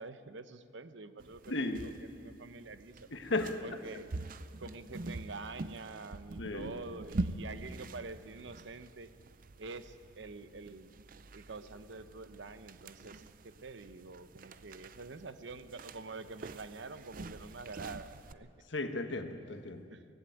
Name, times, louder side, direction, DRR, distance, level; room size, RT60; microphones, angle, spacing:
voice 1, 0.0-3.1 3.6-4.2 4.6-9.1 9.6-10.9 11.3-18.5 19.9-20.0, right 3 dB, 65° right, 12 dB, 0.8 m, -47 dB
sound 1, 1.2-18.3, right 2 dB, 45° right, 0.5 m, -45 dB
voice 2, 1.5-1.8 3.1-3.6 6.4-6.7 18.7-19.8, left 2 dB, 65° left, 7 dB, 1.3 m, -35 dB
18.0 x 15.5 x 9.2 m, 2.3 s
head